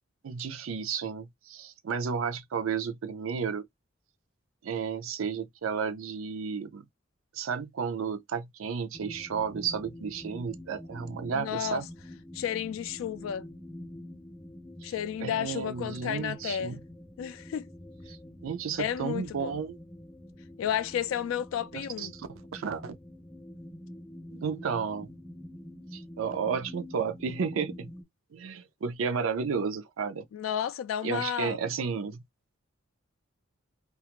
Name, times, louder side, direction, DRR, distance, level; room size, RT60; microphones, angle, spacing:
voice 1, 0.2-3.7 4.6-6.8 7.3-11.9 14.8-14.9 15.2-16.8 18.1-18.2 18.4-19.8 21.7-23.0 24.3-25.1 25.9-27.9 28.3-30.3 31.0-32.2, right 6 dB, 85° right, 0.5 m, -32 dB
sound 1, 8.9-28.0, left 1 dB, 10° left, 0.5 m, -46 dB
voice 2, 11.3-11.8 12.3-13.4 14.8-16.8 17.2-17.7 18.8-19.5 20.6-22.1 30.3-31.6, left 9 dB, 80° left, 0.3 m, -32 dB
2.4 x 2.3 x 2.8 m
head